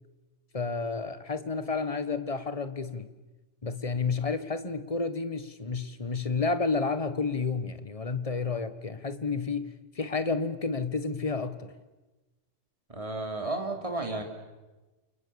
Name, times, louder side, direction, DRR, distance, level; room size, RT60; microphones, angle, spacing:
voice 1, 0.5-3.1 3.6-11.7, left 4 dB, 30° left, 1.5 m, -31 dB
voice 2, 12.9-14.2, right 2 dB, 25° right, 3.4 m, -32 dB
29.0 x 29.0 x 7.1 m
omnidirectional pair, 1.2 m